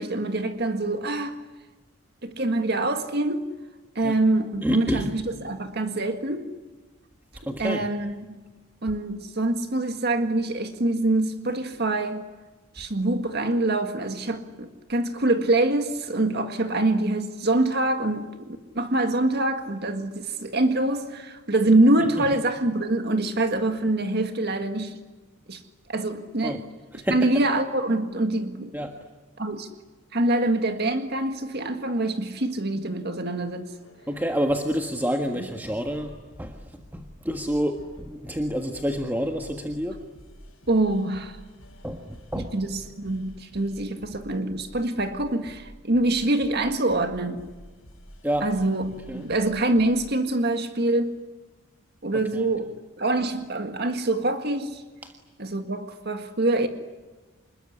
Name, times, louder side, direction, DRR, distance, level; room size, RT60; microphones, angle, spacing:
voice 1, 0.0-1.4 2.2-3.5 4.0-6.5 7.6-8.3 8.8-12.2 12.7-25.0 25.5-25.6 25.9-26.6 26.9-28.8 29.4-29.7 30.1-33.7 40.7-41.4 42.4-47.5 48.4-51.2 52.0-52.7 53.0-54.8 55.4-56.7, right 2 dB, 50° right, 7 dB, 1.8 m, -25 dB
voice 2, 4.6-5.1 7.5-7.9 22.2-22.3 26.4-26.6 26.9-27.3 28.7-28.9 34.1-40.0 41.8-42.5 48.2-48.5 49.1-49.3 52.3-52.5 55.0-55.1, equal, 10° right, 3 dB, 1.5 m, -28 dB
sound 1, 33.7-34.7 35.4-50.0 50.7-51.1, equal, 70° left, 6.7 m, -49 dB
27.0 x 21.0 x 9.9 m, 1.3 s
head